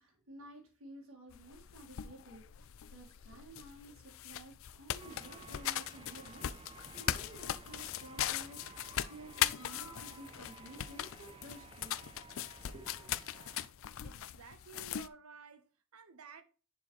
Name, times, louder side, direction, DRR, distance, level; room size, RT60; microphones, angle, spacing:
voice 1, 0.0-12.0 12.6-13.1, right 1 dB, 60° right, 1.9 m, -53 dB
sound 1, 1.3-15.1, left 11 dB, 65° left, 0.4 m, -40 dB
sound 2, 5.0-13.7, right 4 dB, 25° right, 0.4 m, -55 dB
voice 2, 14.0-16.4, right 5 dB, 80° right, 1.0 m, -54 dB
10.5 x 4.6 x 3.1 m
head